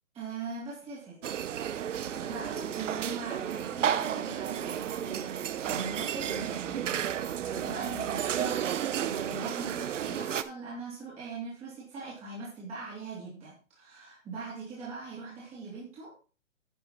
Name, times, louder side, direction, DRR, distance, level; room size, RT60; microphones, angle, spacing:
voice 1, 0.1-1.2 1.9-16.2, right 3 dB, 15° right, -6 dB, 2.8 m, -41 dB
sound 1, 1.2-10.4, right 9 dB, 65° right, 0.9 m, -32 dB
10.5 x 6.2 x 4.3 m, 0.36 s
hypercardioid pair, 155°, 40 cm